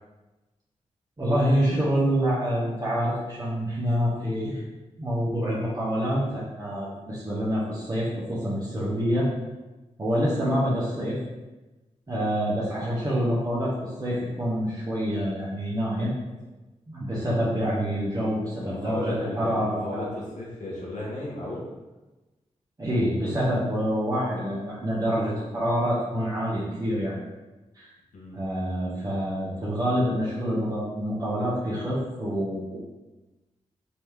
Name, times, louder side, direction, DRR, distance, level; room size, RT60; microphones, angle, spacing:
voice 1, 1.2-4.6 5.0-9.3 10.0-11.2 12.1-16.1 16.9-20.1 22.8-27.2 27.7-27.9 28.3-32.8, equal, 30° right, -8 dB, 1.2 m, -26 dB
voice 2, 18.6-21.6 28.1-28.4, left 1 dB, 80° left, -5 dB, 1.3 m, -35 dB
4.1 x 3.0 x 3.5 m, 1.1 s
cardioid pair, 70°, 13 cm